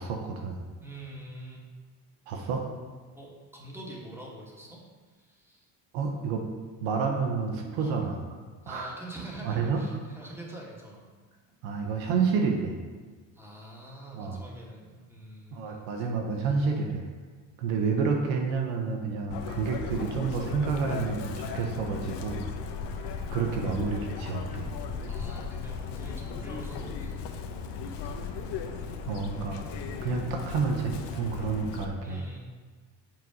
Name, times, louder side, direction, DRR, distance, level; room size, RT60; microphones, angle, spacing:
voice 1, 0.0-0.6 2.3-2.6 5.9-6.4 6.8-8.2 8.7-8.9 9.4-9.8 11.6-12.8 14.1-14.4 15.5-17.1 17.6-22.4 23.3-24.7 29.1-29.6 30.0-32.2, right 5 dB, 75° right, 2 dB, 1.3 m, -29 dB
voice 2, 0.8-1.6 3.1-4.8 5.1-5.7 7.8-8.0 8.6-11.0 13.3-15.8 25.1-28.9 32.0-32.4, right 1 dB, 5° right, -4 dB, 2.7 m, -45 dB
Chirp tweet, 19.3-31.9, left 5 dB, 60° left, 1.2 m, -36 dB
9.2 x 5.0 x 5.4 m, 1.5 s
supercardioid pair, 90°, 47 cm